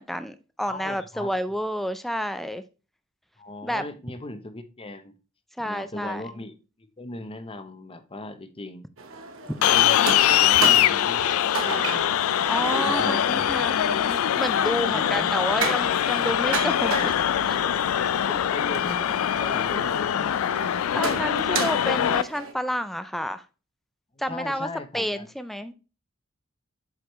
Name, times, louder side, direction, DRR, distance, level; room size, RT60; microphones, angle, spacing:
voice 1, 0.0-2.6 3.6-3.8 5.6-6.2 12.5-17.1 17.4-17.7 20.9-23.5 24.2-24.7 24.9-25.7, equal, ahead, 0.4 m, -30 dB
voice 2, 0.7-1.3 3.4-5.1 5.6-8.9 9.5-12.2 12.8-13.5 14.9-15.3 18.3-20.6 24.1-25.3, left 2 dB, 25° left, 0.8 m, -38 dB
sound 1, 9.0-22.5, right 4 dB, 70° right, 1.0 m, -34 dB
sound 2, 9.6-22.2, left 10 dB, 80° left, 0.4 m, -23 dB
7.8 x 4.8 x 3.1 m
head